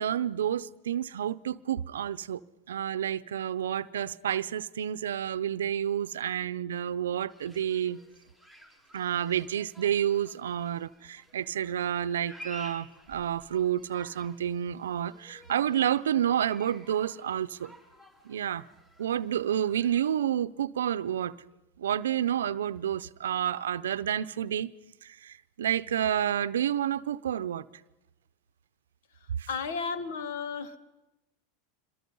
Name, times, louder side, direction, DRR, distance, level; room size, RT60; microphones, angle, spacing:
voice 1, 0.0-2.4 2.7-8.0 8.9-17.7 18.2-18.6 19.0-21.3 21.8-24.7 25.0-27.6 29.4-29.5, right 10 dB, 90° right, 0.7 m, -29 dB
sound 1, 7.3-20.1, equal, 20° left, 5.1 m, -53 dB
voice 2, 29.5-30.8, left 5 dB, 75° left, 1.7 m, -33 dB
26.5 x 22.5 x 5.5 m
hypercardioid pair, 105°, 0 cm